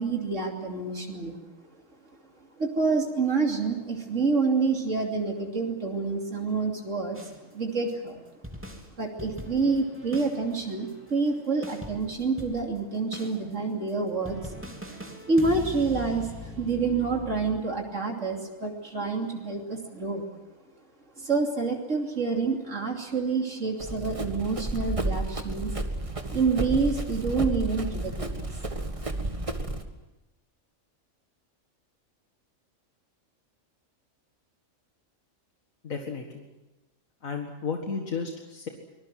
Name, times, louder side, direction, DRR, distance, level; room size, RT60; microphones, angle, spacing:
voice 1, 0.0-1.4 2.6-7.2 7.5-8.2 9.0-14.5 15.3-20.3 21.2-25.7 26.3-28.5, right 4 dB, 65° right, 1 dB, 3.2 m, -28 dB
sound 1, 7.1-7.4 7.9-8.0 8.4-12.8 13.1-13.4 13.9-14.0 14.3-17.6, equal, 10° right, 3.0 m, -41 dB
Run, 23.8-29.8, right 2 dB, 25° right, 1.7 m, -32 dB
voice 2, 35.8-36.5 37.2-38.7, left 5 dB, 80° left, 3 dB, 2.2 m, -33 dB
25.0 x 20.5 x 7.7 m, 1.0 s
omnidirectional pair, 1.4 m